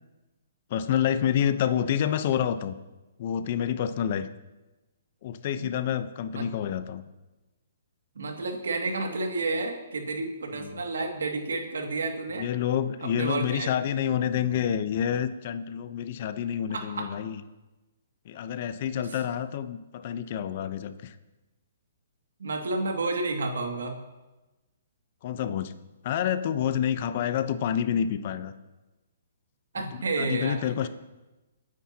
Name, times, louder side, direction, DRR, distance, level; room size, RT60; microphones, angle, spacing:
voice 1, 0.7-2.8 3.2-4.3 5.2-7.0 10.5-10.8 12.4-17.4 18.2-21.2 25.2-25.7 26.0-28.5 29.9-30.9, left 9 dB, 45° left, 11 dB, 0.8 m, -28 dB
voice 2, 8.2-12.5 13.0-13.7 16.7-17.1 22.4-23.9 29.7-30.6, right 3 dB, 85° right, 2 dB, 2.3 m, -30 dB
29.0 x 9.9 x 2.9 m, 1.1 s
hypercardioid pair, 150°, 0 cm